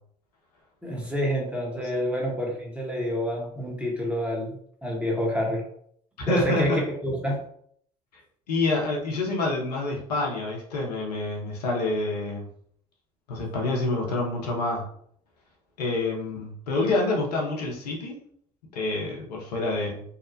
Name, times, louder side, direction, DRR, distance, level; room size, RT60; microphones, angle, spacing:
voice 1, 0.8-4.6 4.8-5.6 6.3-7.4, equal, 5° right, -1 dB, 1.0 m, -28 dB
voice 2, 6.2-6.8 8.5-12.5 13.3-14.8 15.8-18.2 18.7-20.0, left 2 dB, 85° left, -2 dB, 0.6 m, -27 dB
2.7 x 2.0 x 2.6 m, 0.64 s
hypercardioid pair, 55°, 20 cm